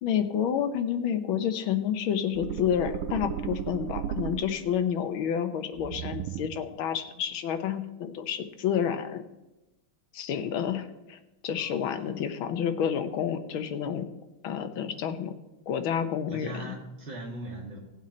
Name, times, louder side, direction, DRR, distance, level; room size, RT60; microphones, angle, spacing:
voice 1, 0.0-9.2 10.1-14.1 14.4-15.3 15.7-16.7, left 8 dB, 75° left, 8 dB, 1.7 m, -29 dB
sound 1, 2.4-4.8 5.8-6.7, right 10 dB, 85° right, 1.5 m, -35 dB
voice 2, 11.6-12.0 16.3-17.8, right 1 dB, 30° right, -2 dB, 2.7 m, -40 dB
16.5 x 7.9 x 4.3 m, 1.0 s
omnidirectional pair, 2.3 m